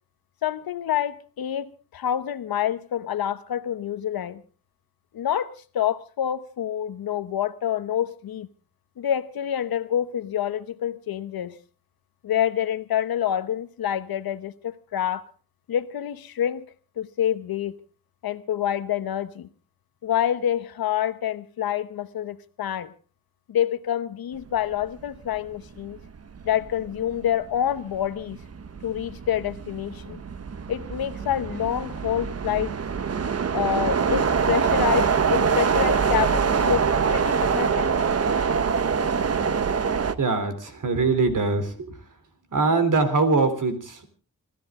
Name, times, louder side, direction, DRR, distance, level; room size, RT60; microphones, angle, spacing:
voice 1, 0.4-4.4 5.1-8.5 9.0-11.6 12.2-15.3 15.7-16.6 17.0-17.8 18.2-19.5 20.0-22.9 23.5-26.0 26.4-28.4 28.8-30.2 30.7-32.8 33.5-37.9, left 10 dB, 90° left, 1.1 m, -27 dB
sound 1, 25.2-25.4 25.8-40.2, right 6 dB, 45° right, 1.0 m, -24 dB
voice 2, 40.2-41.9 42.5-44.1, right 3 dB, 60° right, 3.5 m, -22 dB
27.0 x 13.0 x 3.7 m
cardioid pair, 95°, 35 cm